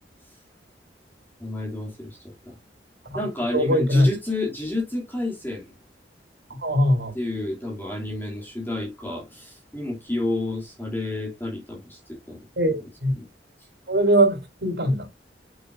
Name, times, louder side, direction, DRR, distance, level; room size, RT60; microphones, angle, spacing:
voice 1, 1.4-2.6 3.1-5.7 7.1-12.4 13.2-13.3, left 2 dB, 10° left, 2.9 m, -30 dB
voice 2, 3.5-4.1 6.5-7.1 12.6-13.1 13.9-15.1, equal, 70° right, 3.4 m, -21 dB
7.6 x 6.3 x 2.6 m
head